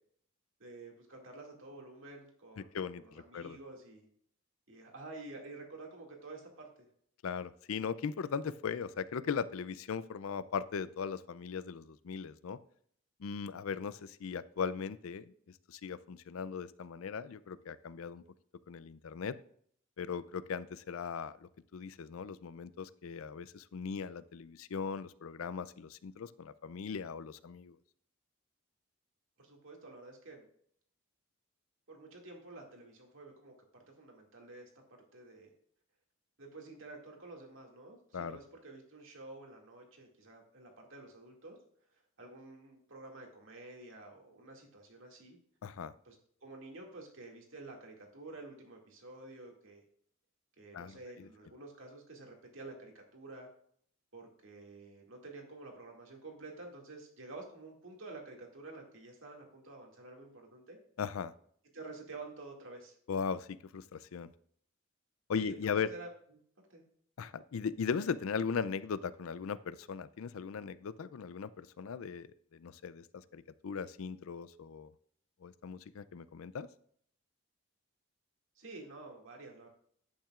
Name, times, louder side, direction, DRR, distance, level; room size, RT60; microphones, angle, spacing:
voice 1, 0.6-4.1 4.7-6.9 29.4-30.5 31.9-35.5 36.4-41.6 42.2-45.4 46.0-46.2 46.4-49.8 50.6-53.5 54.1-60.8 61.7-62.9 65.4-66.1 66.7-66.8 78.6-79.7, right 2 dB, 65° right, 1 dB, 2.2 m, -50 dB
voice 2, 2.7-3.6 7.2-12.6 13.2-15.3 15.7-18.2 18.7-19.4 20.0-27.8 38.1-38.4 45.6-45.9 50.7-51.3 61.0-61.3 63.1-64.3 65.3-65.9 67.2-74.9 75.4-76.7, left 6 dB, 80° left, 16 dB, 0.4 m, -38 dB
10.0 x 8.7 x 2.4 m, 0.63 s
head